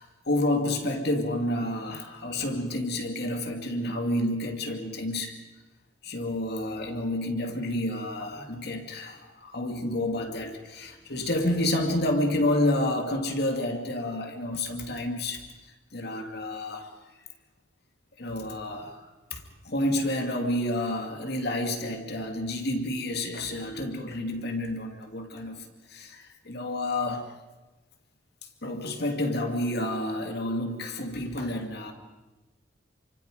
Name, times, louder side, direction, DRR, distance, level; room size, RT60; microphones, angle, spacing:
voice 1, 0.0-5.4 6.0-15.5 15.9-16.9 18.2-27.3 28.6-31.9, left 1 dB, 60° left, 4 dB, 2.6 m, -29 dB
29.0 x 25.0 x 5.2 m, 1.1 s
head